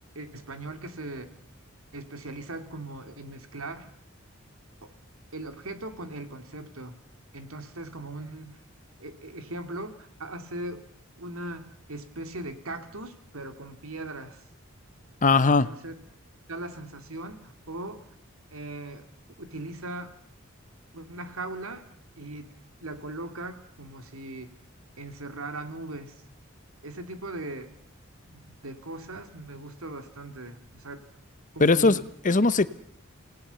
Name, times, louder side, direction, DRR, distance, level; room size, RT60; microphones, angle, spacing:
voice 1, 0.1-1.3 1.9-3.9 4.8-4.9 5.3-6.9 7.3-8.6 9.0-10.9 11.2-14.4 15.5-15.9 16.5-18.1 18.5-19.1 19.4-20.1 20.9-21.9 22.2-22.5 22.8-24.5 25.0-26.2 26.8-27.7 28.3-31.0 31.5-32.0, right 2 dB, 75° right, 2.6 m, -39 dB
voice 2, 15.2-15.7 31.6-32.7, left 3 dB, 40° left, 0.9 m, -20 dB
28.5 x 18.0 x 7.0 m
head